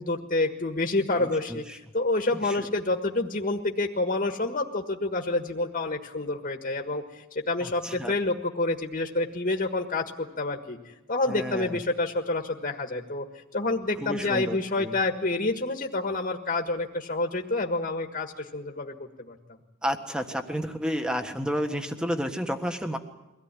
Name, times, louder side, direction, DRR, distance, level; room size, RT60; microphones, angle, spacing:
voice 1, 0.0-13.2 13.5-19.3, left 2 dB, 40° left, 4 dB, 1.6 m, -28 dB
voice 2, 1.2-1.8 2.4-2.7 7.6-8.1 11.3-11.8 13.9-15.0 19.8-23.0, equal, 5° right, 6 dB, 1.5 m, -31 dB
23.5 x 17.5 x 9.9 m, 1.0 s
head